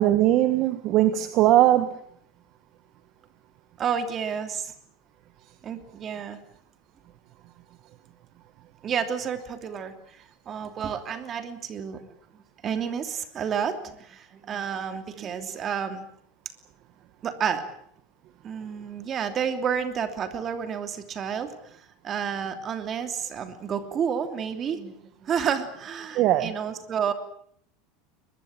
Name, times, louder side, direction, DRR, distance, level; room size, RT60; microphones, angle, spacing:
voice 1, 0.0-2.0 26.1-26.5, right 13 dB, 40° right, 11 dB, 1.4 m, -20 dB
voice 2, 3.8-4.7 5.6-6.4 8.8-12.1 12.6-16.1 17.2-17.6 18.4-21.5 22.0-24.9 25.2-27.1, right 7 dB, 25° right, 8 dB, 2.9 m, -30 dB
23.0 x 22.0 x 8.9 m, 0.66 s
supercardioid pair, 160°, 0 cm